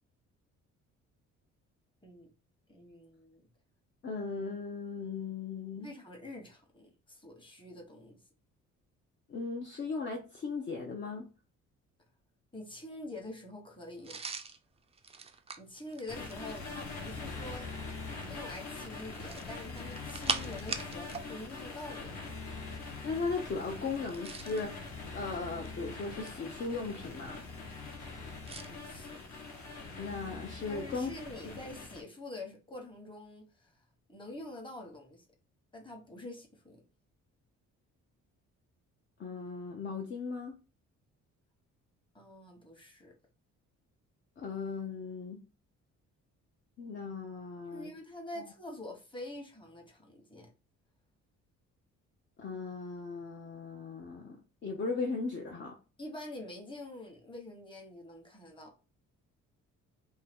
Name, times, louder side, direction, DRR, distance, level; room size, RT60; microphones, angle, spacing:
voice 1, 2.7-3.4 5.8-8.2 12.5-14.2 15.6-17.7 18.3-22.3 28.7-29.2 30.7-33.7 34.1-35.2 35.7-36.8 42.1-43.1 47.7-50.5 56.0-58.7, left 2 dB, 15° left, 1.0 m, -46 dB
voice 2, 4.0-5.9 9.3-11.3 23.0-24.8 25.1-27.4 30.0-31.1 31.4-31.5 39.2-40.5 44.4-45.4 46.8-47.9 52.4-55.8, left 4 dB, 40° left, 0.6 m, -37 dB
sound 1, 14.0-16.7 19.1-21.3 21.6-21.7 24.0-24.7 25.4-26.5 28.4-28.7, right 5 dB, 20° right, 0.3 m, -40 dB
sound 2, 16.1-32.0, left 3 dB, 60° left, 1.1 m, -43 dB
2.8 x 2.3 x 3.4 m
cardioid pair, 90°, 30 cm